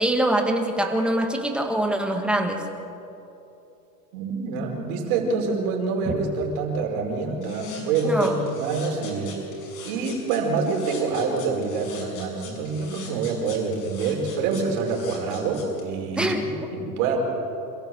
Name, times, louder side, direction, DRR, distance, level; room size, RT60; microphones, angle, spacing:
voice 1, 0.0-2.6 6.1-6.2 8.0-8.4 16.2-16.4, right 1 dB, ahead, 3 dB, 1.7 m, -23 dB
voice 2, 4.1-9.4 9.8-17.2, right 4 dB, 55° right, 1 dB, 5.1 m, -26 dB
sound 1, 7.4-15.8, left 6 dB, 60° left, 6.6 m, -43 dB
27.0 x 15.0 x 7.8 m, 2.9 s
supercardioid pair, 150°, 49 cm